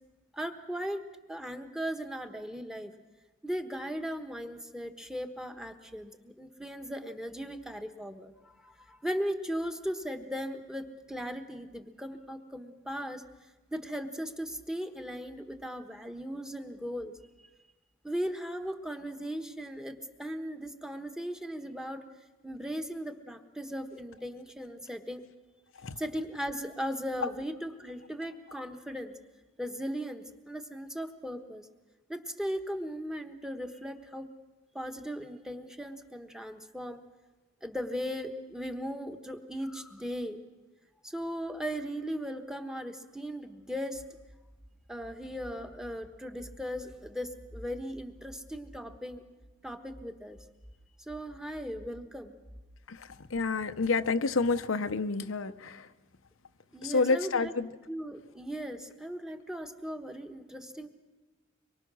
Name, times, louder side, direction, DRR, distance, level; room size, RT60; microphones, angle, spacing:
voice 1, 0.3-1.0 1.3-2.9 3.4-13.2 13.7-17.1 18.0-22.0 22.4-25.2 26.0-29.1 29.6-31.7 32.1-34.3 34.7-37.0 37.6-40.4 41.0-44.0 44.9-49.2 49.6-50.4 51.1-52.4 56.7-57.5 57.9-60.9, equal, 5° right, 7 dB, 1.2 m, -37 dB
voice 2, 52.9-55.9 56.8-57.7, left 4 dB, 80° left, 10 dB, 0.8 m, -29 dB
24.5 x 23.0 x 6.3 m, 1.2 s
head